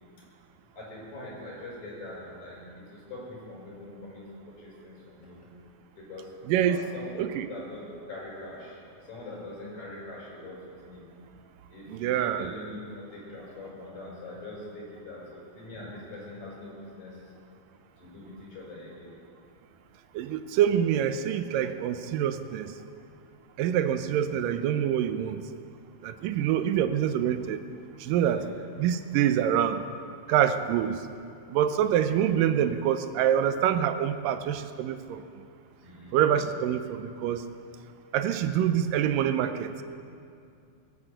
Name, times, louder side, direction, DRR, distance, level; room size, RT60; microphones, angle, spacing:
voice 1, 0.7-4.2 4.6-5.4 6.0-6.3 6.6-7.1 7.5-10.6 10.8-11.0 11.7-17.2 18.0-19.1 28.3-28.6 35.8-36.3, left 2 dB, 55° left, -5 dB, 6.2 m, -43 dB
voice 2, 6.5-6.8 7.2-7.5 11.9-12.5 20.2-22.7 23.6-25.4 26.0-27.6 28.0-28.4 28.8-29.8 30.3-31.0 31.5-35.2 36.1-37.4 38.1-39.7, right 10 dB, 80° right, 10 dB, 2.2 m, -26 dB
20.5 x 8.4 x 8.0 m, 2.4 s
omnidirectional pair, 4.0 m